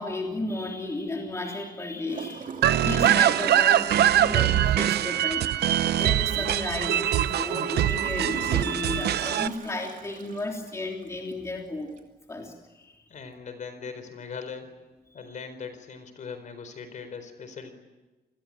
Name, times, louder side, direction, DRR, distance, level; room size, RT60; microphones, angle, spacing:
voice 1, 0.0-2.6 2.8-5.5 6.0-11.9 12.3-12.9, left 2 dB, 15° left, 1 dB, 3.3 m, -33 dB
Gurgling / Toilet flush, 2.1-11.5 12.0-12.1, right 6 dB, 50° right, 2.7 m, -42 dB
sound 1, 2.6-9.5, right 11 dB, 85° right, 0.9 m, -23 dB
voice 2, 13.1-14.7 15.1-17.7, left 5 dB, 50° left, 10 dB, 4.4 m, -40 dB
29.0 x 21.5 x 9.0 m, 1.1 s
wide cardioid pair, 165°, 17 cm